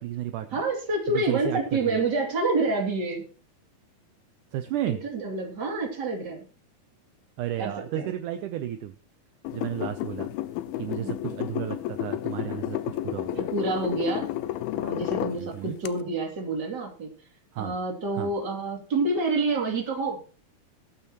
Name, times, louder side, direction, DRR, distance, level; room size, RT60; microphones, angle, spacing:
voice 1, 0.0-0.6 1.1-2.0 4.5-5.0 7.4-8.9 9.5-10.3 10.8-13.5 15.3-15.8 17.5-17.8 18.1-18.3, right 12 dB, 75° right, 8 dB, 1.9 m, -33 dB
voice 2, 0.5-3.2 4.9-6.5 7.6-8.1 11.0-11.2 13.3-14.3 14.7-17.1 17.6-20.2, right 3 dB, 30° right, 1 dB, 2.8 m, -28 dB
sound 1, 9.5-15.4 15.9-16.0, left 14 dB, 80° left, 2.4 m, -31 dB
21.0 x 8.7 x 3.0 m, 0.38 s
omnidirectional pair, 4.4 m